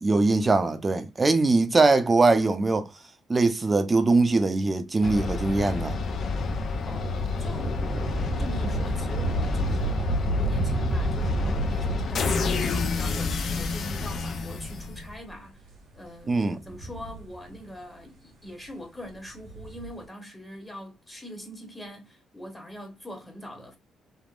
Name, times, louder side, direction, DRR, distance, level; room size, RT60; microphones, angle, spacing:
voice 1, 0.0-2.9 3.3-6.0 16.3-16.6, right 3 dB, 25° right, 0.6 m, -22 dB
sound 1, 5.0-15.3, left 4 dB, 60° left, 0.5 m, -29 dB
Thunder / Rain, 5.7-14.7 15.5-15.6 16.5-17.8 19.3-20.0, right 2 dB, 85° right, 1.6 m, -32 dB
voice 2, 6.8-15.7 15.9-23.8, equal, 15° left, 1.0 m, -43 dB
3.5 x 2.0 x 2.4 m
cardioid pair, 90°, 0 cm